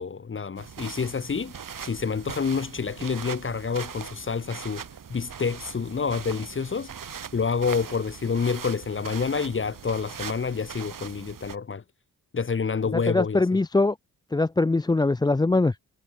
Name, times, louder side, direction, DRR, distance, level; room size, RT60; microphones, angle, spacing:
voice 1, 0.0-4.8 5.1-11.8 12.3-13.4, left 5 dB, 35° left, 1.3 m, -28 dB
sound 1, 0.6-11.6, right 7 dB, 65° right, 7.4 m, -40 dB
voice 2, 13.1-14.0 14.3-15.8, left 2 dB, 10° left, 0.5 m, -22 dB
wide cardioid pair, 120°, 36 cm